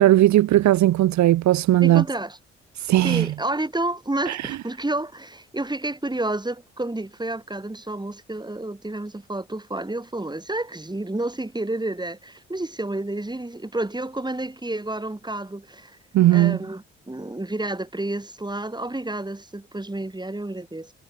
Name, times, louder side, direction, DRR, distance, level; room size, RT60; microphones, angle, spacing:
voice 1, 0.0-2.0 2.8-3.3 4.3-4.6 16.1-16.6, right 14 dB, 60° right, 1.2 m, -17 dB
voice 2, 1.8-2.4 3.0-16.0 16.3-20.9, right 2 dB, 15° right, 6.8 m, -30 dB
hypercardioid pair, 45°, 32 cm